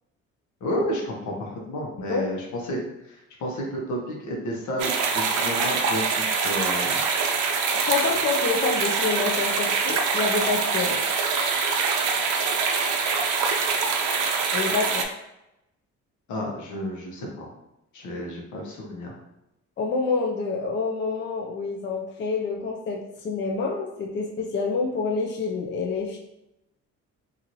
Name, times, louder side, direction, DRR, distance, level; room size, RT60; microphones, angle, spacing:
voice 1, 0.6-7.0 16.3-17.5 17.9-19.1, equal, 75° left, -2 dB, 0.9 m, -31 dB
voice 2, 2.0-2.3 7.2-11.0 14.5-15.0 19.8-26.2, left 4 dB, 40° left, 0 dB, 0.4 m, -27 dB
sound 1, 4.8-15.0, right 5 dB, 80° right, 0.5 m, -24 dB
2.9 x 2.6 x 2.6 m, 0.88 s
cardioid pair, 90°, 30 cm